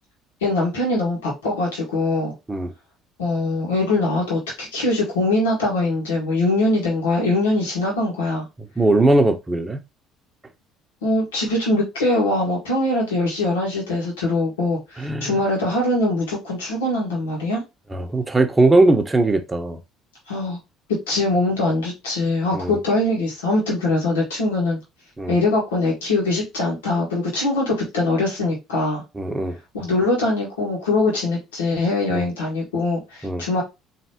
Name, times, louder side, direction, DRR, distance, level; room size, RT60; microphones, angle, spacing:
voice 1, 0.4-2.3 3.2-8.4 11.0-17.6 20.3-20.6 21.1-24.8 25.3-29.0 29.7-33.6, left 2 dB, 90° left, 2.0 m, -22 dB
voice 2, 8.8-9.8 15.0-15.4 17.9-19.8 22.5-22.8 25.2-25.4 29.1-29.6 32.1-32.3 33.2-33.5, right 2 dB, 20° right, 1.0 m, -19 dB
4.0 x 3.4 x 2.9 m
hypercardioid pair, 65°, 0 cm